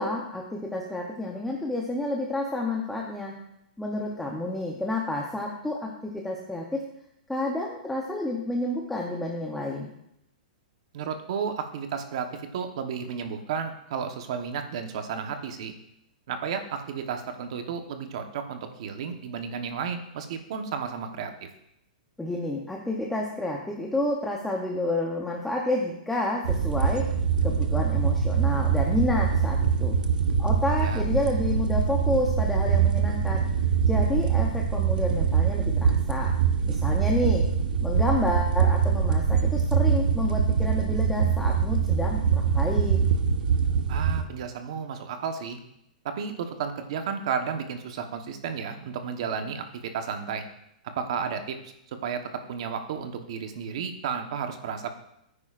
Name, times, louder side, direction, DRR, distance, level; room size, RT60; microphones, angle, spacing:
voice 1, 0.0-3.3 3.8-6.8 7.3-9.9 22.2-27.1 27.4-30.0 30.4-33.5 33.9-36.3 36.7-37.5 37.8-43.0, left 2 dB, 5° left, -1 dB, 0.7 m, -30 dB
voice 2, 10.9-15.7 16.3-21.5 30.8-31.0 43.9-45.6 46.0-50.4 51.0-51.7 52.0-52.2 52.5-54.9, right 6 dB, 40° right, 6 dB, 1.1 m, -33 dB
sound 1, 26.4-44.2, right 6 dB, 80° right, 1.0 m, -24 dB
17.0 x 9.8 x 2.5 m, 0.80 s
hypercardioid pair, 175°, 5 cm